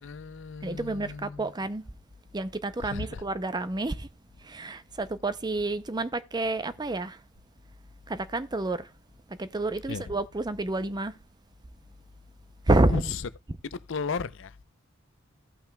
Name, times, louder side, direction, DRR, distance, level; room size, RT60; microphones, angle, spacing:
voice 1, 0.0-1.5 2.8-3.2 9.9-10.1 12.9-13.2 13.7-14.6, left 5 dB, 65° left, 0.6 m, -35 dB
voice 2, 0.6-1.8 2.3-4.1 4.4-7.2 8.1-8.9 9.3-11.2 12.7-13.1, right 2 dB, 20° right, 0.5 m, -29 dB
16.0 x 5.8 x 2.2 m
head